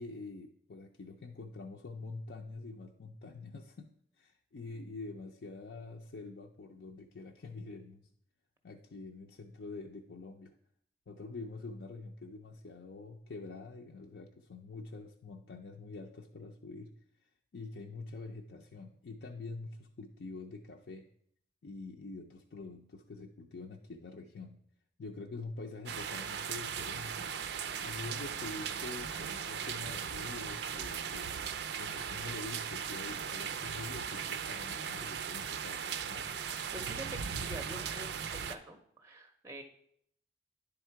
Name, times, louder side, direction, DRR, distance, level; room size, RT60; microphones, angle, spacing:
voice 1, 0.0-8.1 8.6-10.5 11.1-16.9 17.2-21.0 21.6-24.6 25.0-27.3 27.8-36.3, left 3 dB, 75° left, 1 dB, 0.5 m, -46 dB
sound 1, 25.9-38.6, right 7 dB, 70° right, 0.4 m, -38 dB
voice 2, 36.7-39.6, right 1 dB, 15° right, 7 dB, 0.5 m, -46 dB
10.0 x 3.7 x 4.5 m, 0.69 s
head